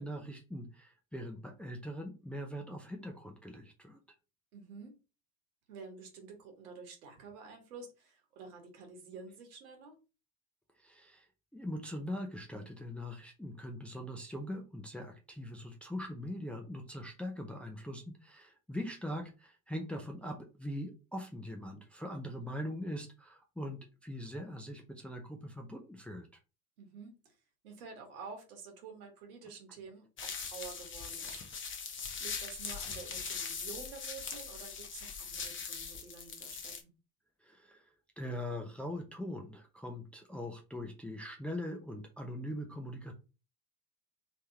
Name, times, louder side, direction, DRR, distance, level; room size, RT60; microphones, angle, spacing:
voice 1, 0.0-4.0 10.8-11.3 11.5-26.3 37.4-37.9 38.2-43.1, equal, 5° left, 2 dB, 0.7 m, -42 dB
voice 2, 4.5-5.0 5.7-9.9 26.8-27.4 27.6-31.4 32.2-36.9, right 5 dB, 65° right, 4 dB, 1.7 m, -49 dB
sound 1, 30.2-36.8, left 6 dB, 25° left, 1.0 m, -41 dB
3.5 x 3.3 x 2.9 m, 0.30 s
figure-of-eight pair, 75°, 46 cm